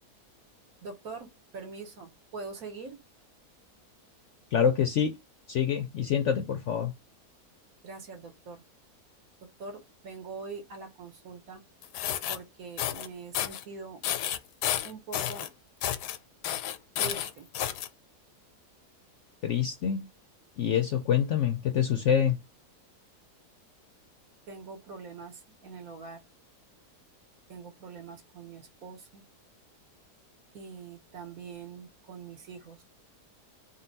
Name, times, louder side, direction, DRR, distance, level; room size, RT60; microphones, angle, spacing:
voice 1, 0.8-3.0 7.8-8.6 9.6-11.6 12.3-14.0 14.8-15.5 17.0-17.5 24.5-26.2 27.5-29.2 30.5-32.8, right 4 dB, 60° right, 1.5 m, -43 dB
voice 2, 4.5-5.2 5.5-6.9 19.4-20.1 20.6-22.4, left 8 dB, 65° left, 0.7 m, -26 dB
sound 1, 11.8-12.4 12.8-13.1 13.3-13.6 14.0-15.5 15.8-16.2 16.4-17.9, left 11 dB, 85° left, 1.2 m, -31 dB
3.9 x 2.2 x 3.9 m
omnidirectional pair, 1.7 m